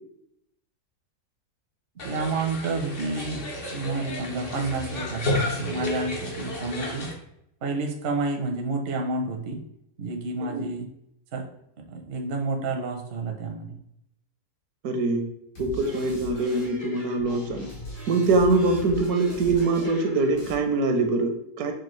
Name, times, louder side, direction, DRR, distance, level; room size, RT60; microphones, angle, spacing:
sound 1, 2.0-7.1, left 2 dB, 45° left, 0.8 m, -32 dB
voice 1, 2.0-3.5 3.7-7.1 7.6-9.6 10.0-10.9 11.3-11.5 11.8-13.8, right 3 dB, 55° right, 3 dB, 0.6 m, -30 dB
voice 2, 14.8-15.3 15.6-17.7 18.1-21.7, right 3 dB, 80° right, 5 dB, 1.1 m, -23 dB
sound 2, 15.5-20.5, equal, 65° left, 1.7 m, -40 dB
6.1 x 2.4 x 3.0 m, 0.77 s
omnidirectional pair, 1.7 m